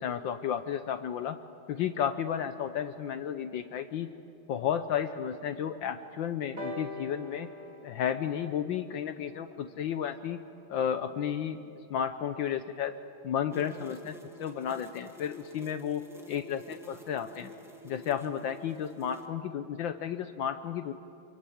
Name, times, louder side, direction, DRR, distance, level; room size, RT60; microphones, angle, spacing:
voice 1, 0.0-1.4 1.7-4.1 4.5-7.5 7.8-10.4 10.7-11.6 11.9-12.9 13.2-17.5 17.8-20.9, left 8 dB, 70° left, 9 dB, 1.5 m, -33 dB
sound 1, 6.6-10.4 11.3-11.4, left 2 dB, 35° right, 2.7 m, -44 dB
sound 2, 13.5-19.3, equal, ahead, 1.8 m, -50 dB
26.5 x 23.5 x 8.7 m, 2.5 s
omnidirectional pair, 2.2 m